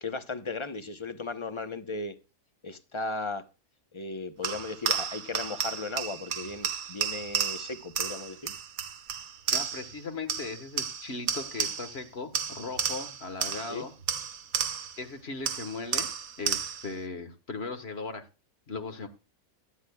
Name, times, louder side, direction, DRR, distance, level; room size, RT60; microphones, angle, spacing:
voice 1, 0.0-2.1 2.6-3.4 3.9-8.5 13.7-13.9, left 3 dB, 25° left, 0.7 m, -36 dB
sound 1, 4.4-10.0 10.3-12.0 12.3-15.0 15.5-16.9, right 7 dB, 70° right, 1.3 m, -32 dB
voice 2, 9.5-13.9 15.0-16.1 16.4-18.2 18.7-19.1, left 4 dB, 45° left, 1.5 m, -38 dB
16.5 x 12.0 x 2.3 m
omnidirectional pair, 1.5 m